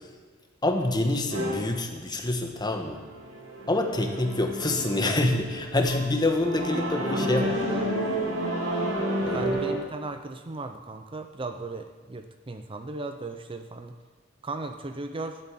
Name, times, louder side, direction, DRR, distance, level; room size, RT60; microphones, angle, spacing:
voice 1, 0.6-3.0 3.7-7.6 9.2-9.6, left 2 dB, 20° left, 4 dB, 1.4 m, -26 dB
sound 1, 1.3-1.5 2.7-9.7, right 1 dB, 85° right, 4.8 m, -30 dB
voice 2, 7.1-8.0 9.3-13.9 14.4-15.4, right 2 dB, 25° right, 7 dB, 0.6 m, -36 dB
12.0 x 7.9 x 9.1 m, 1.4 s
head